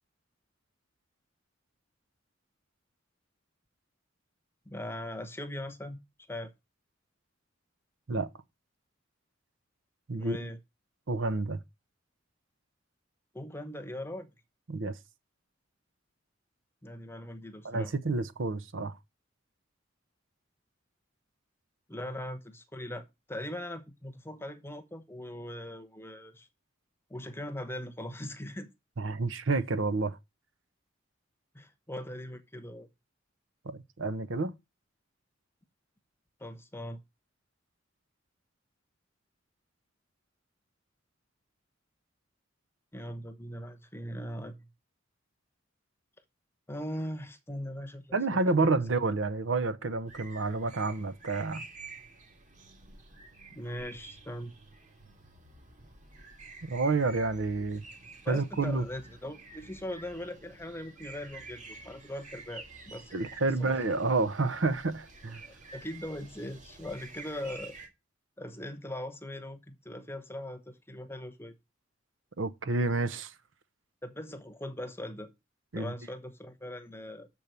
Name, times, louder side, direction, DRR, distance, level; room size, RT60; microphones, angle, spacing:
voice 1, 4.7-6.0 6.3-6.5 10.1-10.6 13.3-14.3 16.8-17.9 21.9-26.5 27.1-28.7 31.5-32.9 36.4-37.0 42.9-44.7 46.7-48.8 53.5-54.5 58.2-63.1 63.6-63.7 65.4-67.8 68.4-71.5 74.0-75.3 75.7-77.3, left 1 dB, 10° left, 0.9 m, -40 dB
voice 2, 10.1-10.5 11.1-11.6 14.7-14.9 17.6-19.0 29.0-30.2 33.6-34.5 48.1-51.6 56.6-57.8 58.3-58.8 63.1-65.4 72.4-73.3 75.7-75.9, right 3 dB, 70° right, 0.8 m, -29 dB
sound 1, 50.1-67.9, right 3 dB, 40° right, 2.0 m, -50 dB
6.9 x 4.6 x 6.7 m
head